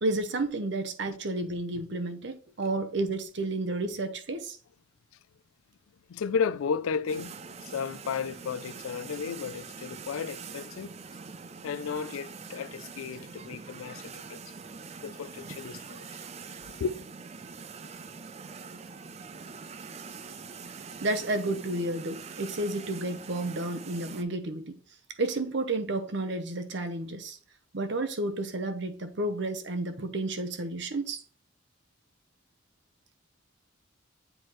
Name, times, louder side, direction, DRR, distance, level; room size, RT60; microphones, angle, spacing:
voice 1, 0.0-4.6 21.0-24.8 25.2-27.4 27.7-31.2, right 2 dB, 55° right, 0.8 m, -31 dB
voice 2, 6.1-10.9 11.6-14.4 15.0-16.2 16.8-17.0, left 6 dB, 80° left, 0.4 m, -33 dB
sound 1, 7.1-24.2, right 5 dB, 30° right, 0.4 m, -44 dB
7.9 x 4.4 x 3.1 m
head